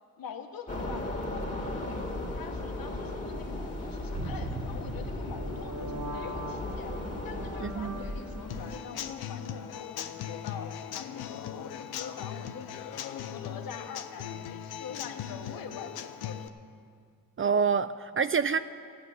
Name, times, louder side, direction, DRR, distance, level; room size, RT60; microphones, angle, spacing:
voice 1, 0.2-7.0 7.2-12.8 13.2-16.5, left 6 dB, 65° left, 5 dB, 1.2 m, -45 dB
sound 1, 0.7-8.8, left 2 dB, 20° left, 2.2 m, -36 dB
sound 2, 4.1-8.6, right 1 dB, 50° right, 1.4 m, -40 dB
voice 2, 7.6-8.0 17.4-18.6, right 6 dB, 35° right, 12 dB, 0.4 m, -27 dB
Human voice / Acoustic guitar / Drum, 8.5-16.5, left 9 dB, 80° left, 0.7 m, -39 dB
14.0 x 7.1 x 9.4 m, 2.3 s
supercardioid pair, 50°, 36 cm